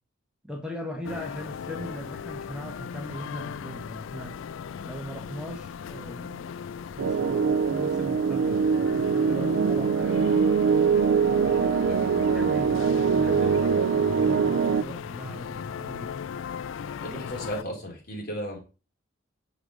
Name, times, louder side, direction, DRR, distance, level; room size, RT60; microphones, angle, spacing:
voice 1, 0.4-4.4 4.8-6.5 6.9-10.3 11.3-12.1 12.3-16.1, equal, 5° right, 0 dB, 1.5 m, -39 dB
sound 1, 1.0-17.6, left 7 dB, 75° left, 0.3 m, -37 dB
sound 2, 7.0-14.8, right 6 dB, 65° right, 0.4 m, -23 dB
voice 2, 17.0-18.6, equal, 55° left, -1 dB, 3.4 m, -35 dB
6.7 x 4.9 x 6.3 m, 0.33 s
head